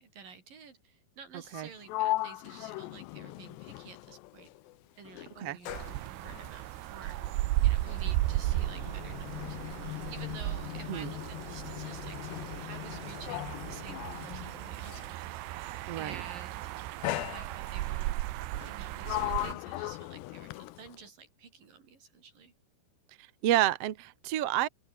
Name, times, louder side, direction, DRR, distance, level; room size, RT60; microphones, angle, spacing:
voice 1, 0.0-4.5 5.0-15.7 15.9-16.6 17.1-18.2 18.4-22.5, right 6 dB, 55° right, 6.1 m, -51 dB
Sliding door, 1.5-4.8 5.1-15.2 16.1-16.4 17.0-18.0 18.5-21.1, left 18 dB, 85° left, 3.0 m, -39 dB
sound 1, 5.7-19.5, right 17 dB, 90° right, 3.1 m, -35 dB
voice 2, 15.9-16.2 23.4-24.7, right 13 dB, 70° right, 1.4 m, -29 dB
open air
omnidirectional pair, 4.8 m